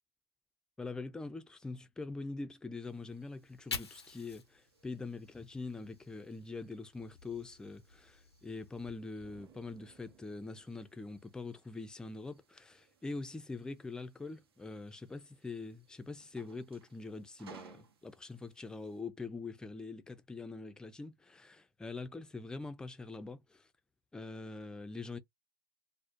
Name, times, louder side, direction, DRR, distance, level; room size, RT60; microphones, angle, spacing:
voice 1, 0.8-23.7 24.1-25.2, left 3 dB, 5° left, 0.3 m, -44 dB
sound 1, 2.8-19.0, right 5 dB, 70° right, 0.6 m, -64 dB
Fire, 3.3-6.5 6.9-8.9, left 5 dB, 85° left, 0.5 m, -48 dB
Explosion, 9.2-11.9, right 7 dB, 25° right, 0.7 m, -64 dB
2.3 x 2.0 x 2.9 m
figure-of-eight pair, 95°, 13 cm